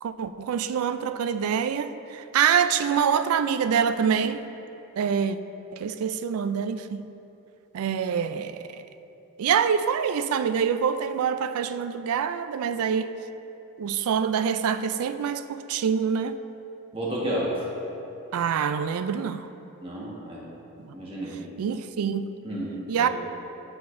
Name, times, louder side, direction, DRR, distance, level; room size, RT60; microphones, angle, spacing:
voice 1, 0.0-4.4 5.0-5.4 5.7-7.0 7.7-8.6 9.4-13.1 13.8-16.4 18.3-19.5 21.6-22.3 22.9-23.1, right 7 dB, 85° right, 0.3 m, -25 dB
voice 2, 16.9-17.5 19.8-20.4 20.9-21.4 22.4-23.1, right 1 dB, 25° right, 1.3 m, -31 dB
9.3 x 7.7 x 2.6 m
head